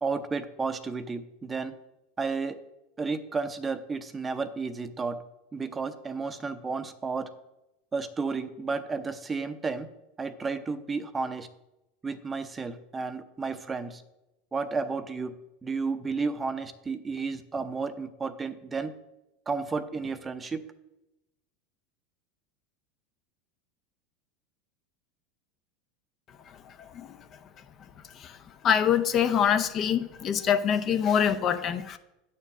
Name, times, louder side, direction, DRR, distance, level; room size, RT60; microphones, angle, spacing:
voice 1, 0.0-1.7 2.2-2.6 3.0-5.2 5.5-7.3 7.9-9.9 10.2-11.5 12.0-14.0 14.5-15.3 15.6-18.9 19.5-20.6, right 4 dB, 20° right, 11 dB, 0.6 m, -32 dB
voice 2, 26.5-27.3 28.1-28.4 28.6-32.0, left 8 dB, 40° left, 9 dB, 0.6 m, -25 dB
8.7 x 4.5 x 6.0 m, 0.92 s
hypercardioid pair, 80°, 0 cm